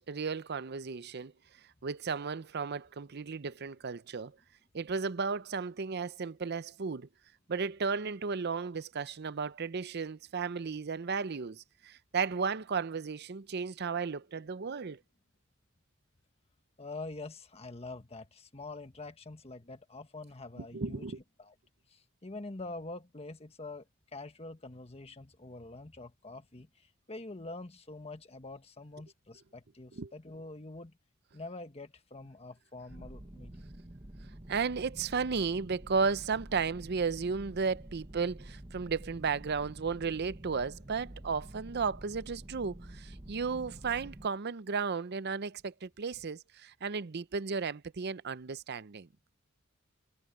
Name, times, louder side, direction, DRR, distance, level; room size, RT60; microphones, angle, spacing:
voice 1, 0.0-1.3 1.8-4.3 4.7-7.1 7.5-15.0 20.6-21.2 29.9-30.1 34.5-49.1, right 5 dB, 55° right, 0.6 m, -34 dB
voice 2, 16.8-21.0 21.4-21.5 21.9-23.8 24.1-31.0 31.3-33.7, left 2 dB, 30° left, 1.5 m, -45 dB
sound 1, 32.9-44.3, right 1 dB, 25° right, 1.3 m, -49 dB
head